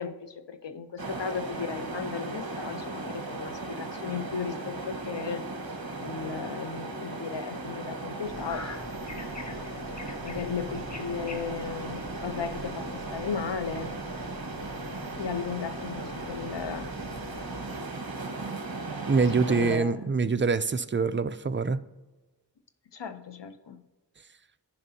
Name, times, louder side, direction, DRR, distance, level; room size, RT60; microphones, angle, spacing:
voice 1, 0.0-8.6 10.2-13.9 15.2-16.9 17.7-17.8 19.5-20.3 22.9-23.8, left 6 dB, 75° left, 9 dB, 0.7 m, -36 dB
sound 1, 1.0-19.8, right 2 dB, 55° right, 1.2 m, -37 dB
sound 2, 8.2-17.8, left 3 dB, 40° left, 0.8 m, -45 dB
voice 2, 19.0-21.8, right 4 dB, 30° right, 12 dB, 0.4 m, -25 dB
14.5 x 5.3 x 2.8 m, 1.2 s
wide cardioid pair, 50°, 43 cm